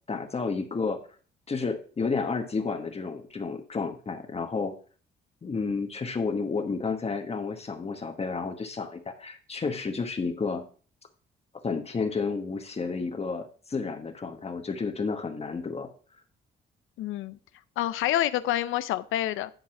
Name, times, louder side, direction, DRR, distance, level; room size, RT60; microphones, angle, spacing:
voice 1, 0.1-1.0 1.5-4.7 5.4-10.6 11.6-15.9, left 4 dB, 30° left, 6 dB, 1.2 m, -31 dB
voice 2, 17.0-17.4 17.8-19.5, left 13 dB, 85° left, 14 dB, 0.5 m, -27 dB
10.5 x 4.1 x 5.9 m, 0.41 s
cardioid pair, 90°, 20 cm